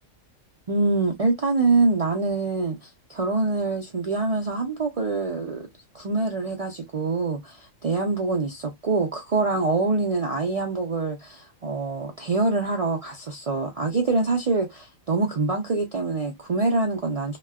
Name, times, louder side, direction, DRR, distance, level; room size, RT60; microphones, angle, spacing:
voice 1, 0.7-5.6 5.9-17.4, right 3 dB, 70° right, 0.3 m, -25 dB
3.0 x 2.1 x 2.2 m
omnidirectional pair, 1.4 m